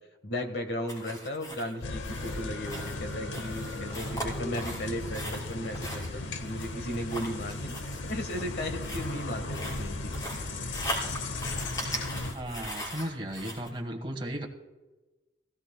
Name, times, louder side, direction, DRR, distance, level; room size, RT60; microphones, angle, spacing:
voice 1, 0.2-7.7 8.0-10.2, left 1 dB, 60° left, 7 dB, 1.3 m, -36 dB
sound 1, 0.9-13.7, equal, 20° left, 3.0 m, -39 dB
sound 2, 1.8-12.3, left 2 dB, 85° left, 0.9 m, -36 dB
voice 2, 12.3-14.5, right 1 dB, 25° right, 3 dB, 1.4 m, -35 dB
16.5 x 16.0 x 2.2 m, 1.1 s
head